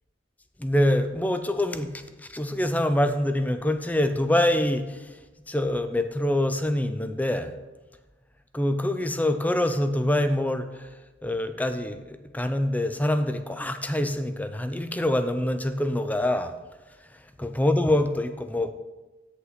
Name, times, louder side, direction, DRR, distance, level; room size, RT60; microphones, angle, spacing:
voice 1, 0.6-5.2 5.5-7.5 8.5-10.9 11.2-16.5 17.1-18.7, left 1 dB, 10° left, 9 dB, 0.5 m, -25 dB
8.3 x 7.8 x 4.1 m, 1.1 s
head